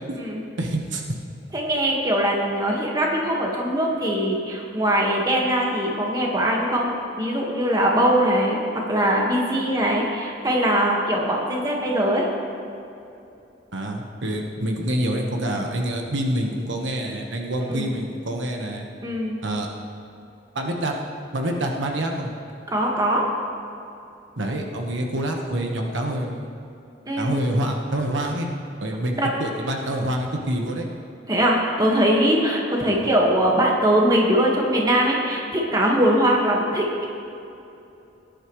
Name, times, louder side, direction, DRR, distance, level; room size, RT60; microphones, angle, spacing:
voice 1, 0.6-1.0 13.7-18.9 19.4-19.7 20.5-20.9 21.3-22.3 24.4-26.5 27.2-28.5 28.8-30.9 32.9-33.1, right 1 dB, 80° right, 1 dB, 1.3 m, -26 dB
voice 2, 1.5-8.6 8.9-12.2 17.7-18.0 19.0-19.3 22.7-23.2 27.1-27.3 29.2-29.3 31.3-37.1, right 1 dB, 20° right, -2 dB, 1.6 m, -21 dB
18.5 x 10.5 x 3.2 m, 2.8 s
head